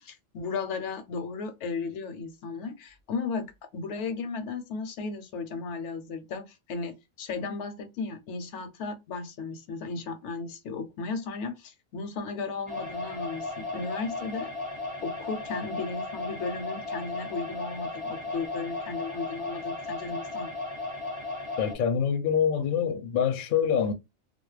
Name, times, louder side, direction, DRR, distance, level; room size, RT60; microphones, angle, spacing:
voice 1, 0.0-14.5 15.0-20.5, left 4 dB, 80° left, 0.9 m, -35 dB
sound 1, 12.7-21.8, left 2 dB, 10° right, 0.6 m, -35 dB
voice 2, 21.6-23.9, left 7 dB, 60° left, 0.6 m, -25 dB
2.3 x 2.0 x 3.1 m
omnidirectional pair, 1.2 m